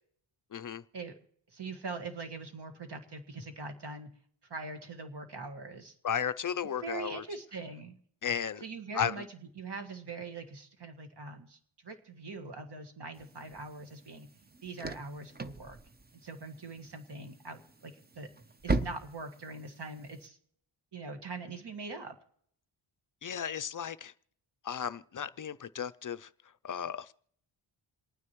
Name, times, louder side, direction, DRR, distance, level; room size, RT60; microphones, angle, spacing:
voice 1, 0.5-0.8 6.0-7.2 8.2-8.6 8.9-9.1 23.2-24.1 24.6-26.3 26.6-27.1, left 8 dB, 40° left, 14 dB, 0.4 m, -34 dB
voice 2, 1.5-4.1 4.5-6.0 6.8-8.0 8.6-14.3 14.6-15.8 16.2-18.3 18.6-20.4 20.9-22.1, right 3 dB, 55° right, 6 dB, 1.8 m, -42 dB
sound 1, 13.1-20.3, right 3 dB, 20° right, 0.6 m, -40 dB
28.0 x 9.6 x 3.0 m, 0.65 s
wide cardioid pair, 85°, 49 cm